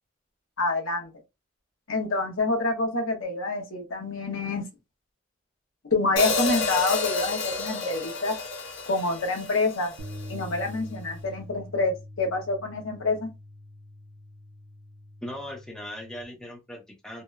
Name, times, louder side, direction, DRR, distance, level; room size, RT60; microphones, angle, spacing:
voice 1, 0.6-1.1 1.9-4.6 5.9-8.4 8.9-9.9 10.3-13.3, left 3 dB, 85° left, 1.0 m, -27 dB
Hi-hat, 6.2-10.3, left 3 dB, 65° left, 0.6 m, -30 dB
sound 1, 10.0-16.2, left 1 dB, 85° right, 0.5 m, -43 dB
voice 2, 15.2-17.2, left 1 dB, 5° left, 0.6 m, -39 dB
2.9 x 2.0 x 2.2 m
head